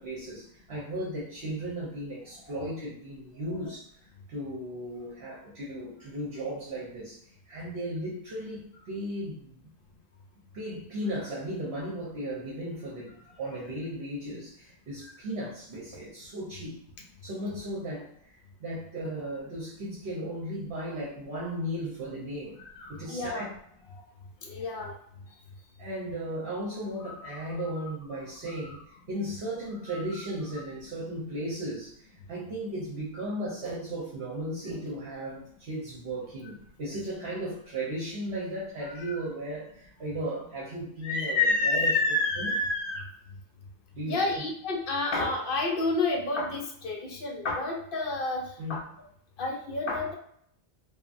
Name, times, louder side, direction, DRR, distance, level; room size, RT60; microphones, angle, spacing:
voice 1, 0.0-9.7 10.5-16.8 17.2-22.6 22.9-23.4 23.8-24.2 25.8-42.0 42.4-42.5 43.9-44.2 48.6-48.8, right 1 dB, 65° right, -6 dB, 1.1 m, -36 dB
voice 2, 22.8-23.5 24.4-24.9 30.1-30.2 38.9-39.2 41.0-43.1 44.1-48.4 48.7-48.8 49.4-50.1, left 2 dB, 60° left, 0 dB, 0.7 m, -29 dB
2.8 x 2.4 x 2.5 m, 0.67 s
omnidirectional pair, 1.2 m